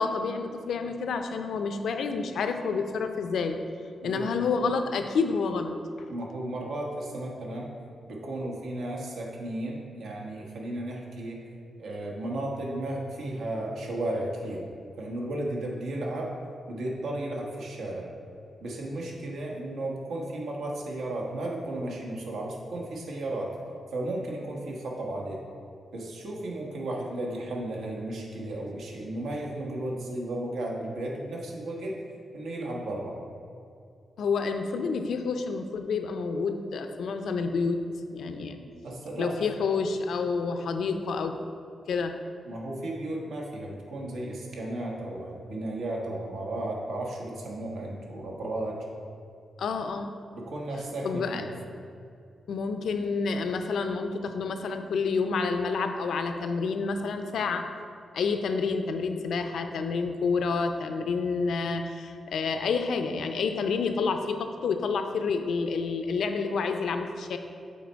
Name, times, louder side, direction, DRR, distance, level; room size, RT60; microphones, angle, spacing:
voice 1, 0.0-3.6 4.0-5.8 34.2-37.8 38.1-38.6 39.2-41.3 41.9-42.1 49.6-50.2 51.0-51.4 52.5-57.6 58.1-67.4, left 4 dB, 75° left, 6 dB, 0.5 m, -29 dB
voice 2, 4.0-4.3 6.1-7.7 8.1-11.4 11.8-14.6 15.0-16.3 16.7-18.1 18.6-23.5 23.9-25.4 25.9-32.0 32.3-33.2 38.8-39.4 42.4-48.8 50.3-51.4, right 1 dB, 85° right, -1 dB, 1.3 m, -34 dB
7.3 x 4.2 x 4.5 m, 2.4 s
wide cardioid pair, 140°, 0 cm